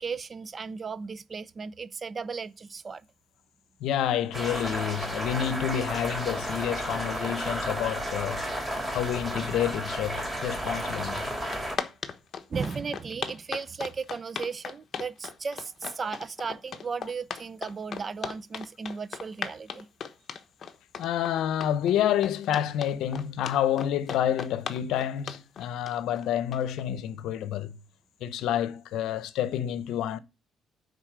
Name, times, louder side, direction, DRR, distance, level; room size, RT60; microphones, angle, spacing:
voice 1, 0.0-3.0 12.5-19.9, right 5 dB, 40° right, 0.7 m, -35 dB
voice 2, 3.8-8.4 8.9-11.3 21.0-27.8 28.2-30.2, left 10 dB, 85° left, 0.8 m, -29 dB
sound 1, 4.3-11.8, equal, 10° right, 3.0 m, -32 dB
sound 2, 10.9-11.0 11.2-26.8, left 6 dB, 50° left, 1.2 m, -37 dB
9.7 x 4.0 x 6.7 m
cardioid pair, 90°, 0 cm